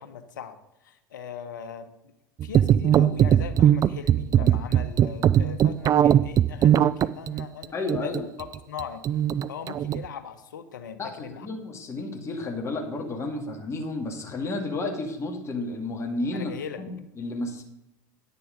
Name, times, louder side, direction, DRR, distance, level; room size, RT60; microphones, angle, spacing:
voice 1, 0.0-1.9 2.4-7.7 8.0-8.1 8.4-9.0 9.5-11.5 16.3-16.8, left 7 dB, 85° left, 9 dB, 1.2 m, -40 dB
sound 1, 2.4-10.0, right 10 dB, 35° right, 0.4 m, -20 dB
voice 2, 7.7-8.3 11.0-17.6, left 2 dB, 30° left, 2 dB, 2.2 m, -32 dB
10.5 x 6.8 x 5.2 m, 0.89 s
hypercardioid pair, 90°, 10 cm